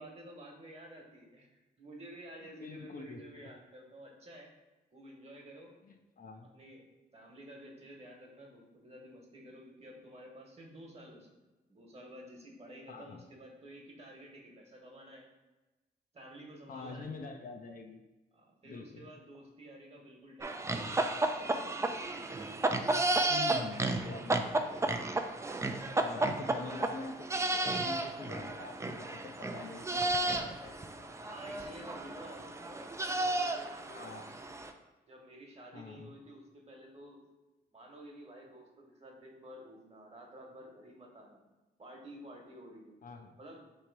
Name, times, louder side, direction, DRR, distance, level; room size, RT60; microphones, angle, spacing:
voice 1, 0.0-1.5 1.8-4.5 4.9-5.7 6.5-6.8 7.1-15.3 16.1-17.1 18.3-21.8 26.2-26.8 31.2-34.2 35.1-37.2 37.7-41.4 41.8-42.9 43.4-43.6, right 1 dB, 35° right, 0 dB, 1.2 m, -51 dB
voice 2, 2.5-3.5 5.8-6.5 12.9-13.2 16.7-18.0 18.6-19.1 23.3-24.7 26.0-30.8 33.9-34.4 35.7-36.1 43.0-43.4, left 4 dB, 50° left, 4 dB, 0.5 m, -46 dB
sound 1, 20.4-34.7, right 2 dB, 15° right, 0.3 m, -33 dB
3.1 x 2.8 x 4.5 m, 1.1 s
cardioid pair, 65°, 18 cm